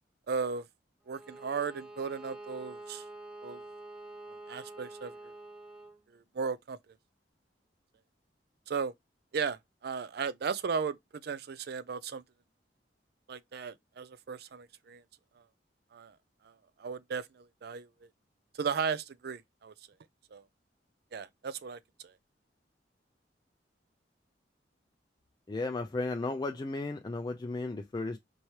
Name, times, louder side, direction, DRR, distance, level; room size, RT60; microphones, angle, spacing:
voice 1, 0.3-0.7 1.1-3.0 3.4-3.6 4.5-5.3 6.1-6.8 8.7-8.9 9.3-12.2 13.3-15.0 15.9-16.2 16.5-16.6 16.8-17.9 18.5-19.7 20.3-20.4 21.1-22.1, right 5 dB, 60° right, 0.4 m, -36 dB
Bowed string instrument, 1.1-6.0, right 2 dB, 5° right, 0.8 m, -47 dB
voice 2, 25.5-28.2, left 2 dB, 25° left, 0.3 m, -34 dB
4.5 x 3.1 x 2.8 m
head